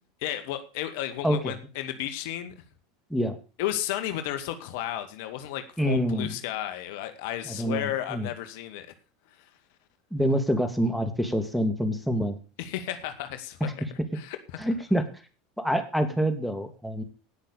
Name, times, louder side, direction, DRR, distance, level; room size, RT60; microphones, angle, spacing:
voice 1, 0.2-2.5 3.6-8.9 12.6-13.7 14.1-14.6, left 12 dB, 65° left, 9 dB, 2.0 m, -33 dB
voice 2, 5.8-6.3 7.5-8.3 10.1-12.4 13.6-13.7 14.6-15.0 15.6-17.0, equal, ahead, 6 dB, 2.6 m, -26 dB
18.0 x 6.6 x 6.8 m, 0.36 s
hypercardioid pair, 85°, 0 cm